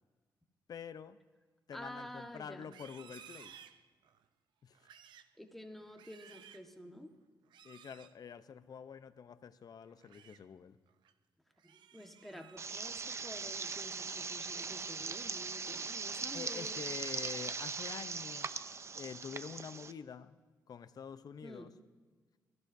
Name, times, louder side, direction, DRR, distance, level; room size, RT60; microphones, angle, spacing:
voice 1, 0.7-1.2 1.7-3.6 4.6-4.8 7.6-10.8 16.3-20.4 20.7-21.7, left 7 dB, 55° left, 0.7 m, -47 dB
voice 2, 1.7-2.7 5.4-7.1 11.6-16.8 21.4-21.7, equal, 5° left, 1.4 m, -50 dB
Livestock farm animals working animals, 2.6-4.3 4.7-5.3 5.8-6.7 7.5-8.1 9.8-10.4 10.9-11.1 11.6-12.7 13.1-14.2 14.6-14.9 15.3-15.7, right 9 dB, 85° right, 0.6 m, -58 dB
sound 1, 12.6-19.9, right 4 dB, 40° right, 0.6 m, -40 dB
21.5 x 14.5 x 2.7 m
cardioid pair, 85°, 8 cm